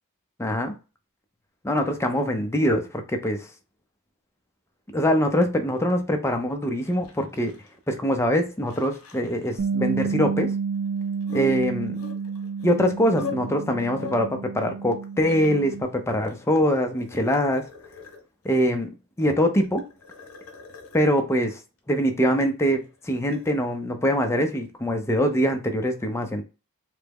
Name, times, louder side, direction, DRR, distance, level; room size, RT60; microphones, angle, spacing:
voice 1, 0.4-0.8 1.6-3.5 4.9-7.5 7.9-10.5 11.3-12.0 12.6-17.7 18.4-18.9 19.2-19.9 20.9-21.6 21.9-26.4, equal, 10° left, 0.5 m, -23 dB
sound 1, 6.8-7.9 8.2-8.3 8.6-9.5 11.2-13.3 13.6-14.2 14.9-15.8 16.3-18.5 19.5-21.1 22.8-23.5, left 4 dB, 80° left, 1.0 m, -40 dB
Bass guitar, 9.6-15.8, right 5 dB, 65° right, 0.5 m, -30 dB
3.3 x 2.0 x 3.4 m
head